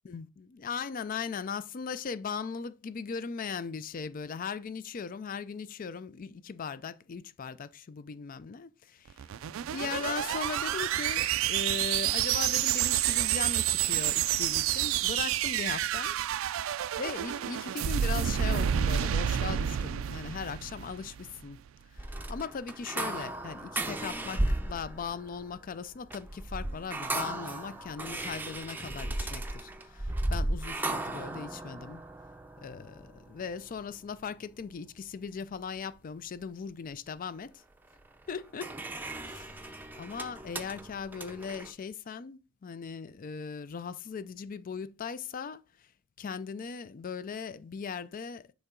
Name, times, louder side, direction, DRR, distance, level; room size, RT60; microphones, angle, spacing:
voice 1, 0.0-9.1 9.7-16.2 17.0-21.6 22.0-32.0 32.6-37.6 38.3-38.7 39.2-45.6 46.2-48.5, left 6 dB, 45° left, 0.4 m, -38 dB
sound 1, 9.1-21.4, right 11 dB, 85° right, 0.3 m, -29 dB
sound 2, 22.0-34.3 38.0-41.7, right 1 dB, 10° right, 0.5 m, -36 dB
7.0 x 4.5 x 3.8 m
head